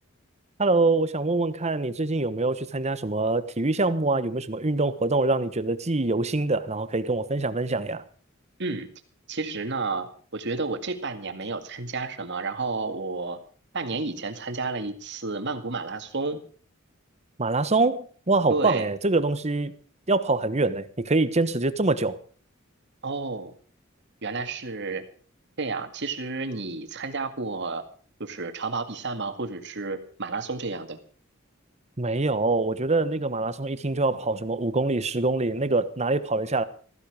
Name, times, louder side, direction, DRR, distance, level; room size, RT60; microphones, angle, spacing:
voice 1, 0.6-8.0 17.4-19.7 20.1-22.2 32.0-36.6, right 3 dB, 35° right, 1.1 m, -24 dB
voice 2, 9.3-13.4 13.7-16.4 18.5-18.9 23.0-23.5 24.2-25.0 25.6-27.8 28.2-31.0, right 3 dB, 60° right, 2.1 m, -31 dB
15.5 x 15.0 x 5.0 m
head